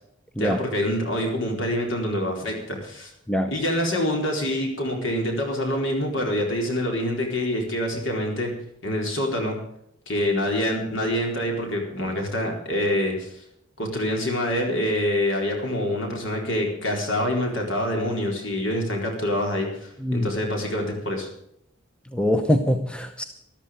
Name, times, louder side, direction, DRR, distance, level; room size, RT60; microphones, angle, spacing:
voice 1, 0.4-3.1 3.5-8.5 8.8-9.6 10.1-13.3 13.8-21.3, left 1 dB, 60° left, 1 dB, 4.3 m, -26 dB
voice 2, 22.1-23.2, left 1 dB, 5° left, 6 dB, 0.8 m, -23 dB
13.5 x 12.5 x 5.2 m, 0.75 s
head